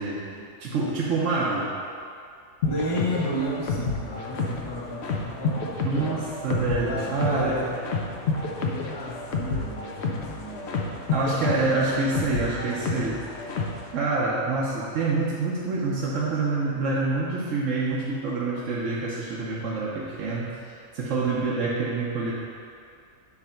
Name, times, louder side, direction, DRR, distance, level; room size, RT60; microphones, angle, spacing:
voice 1, 0.6-1.7 5.8-7.7 11.1-13.2 13.9-20.6 20.9-22.3, right 3 dB, 65° right, -6 dB, 1.1 m, -26 dB
sound 1, 2.6-13.9, left 4 dB, 55° left, 0.9 m, -30 dB
voice 2, 2.7-6.3 6.7-7.8 8.3-10.9, equal, 30° left, -4 dB, 0.5 m, -33 dB
8.2 x 3.3 x 5.7 m, 2.4 s
omnidirectional pair, 1.5 m